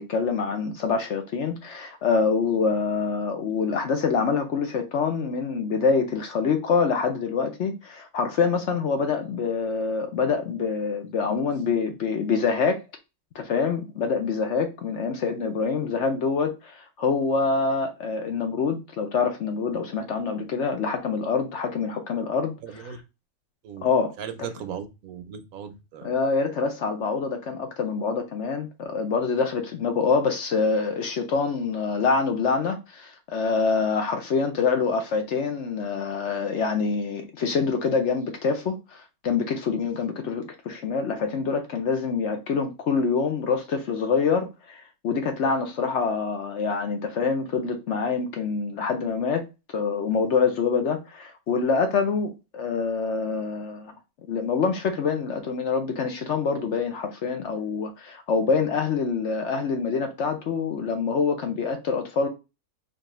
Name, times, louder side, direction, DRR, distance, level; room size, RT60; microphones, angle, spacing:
voice 1, 0.0-12.8 13.3-22.9 23.8-24.1 26.0-49.4 49.7-53.9 54.3-62.3, left 5 dB, 60° left, 0.8 m, -25 dB
voice 2, 22.6-23.0 23.6-23.9 24.2-26.1, right 8 dB, 75° right, 1.1 m, -37 dB
4.3 x 2.8 x 3.0 m
omnidirectional pair, 1.6 m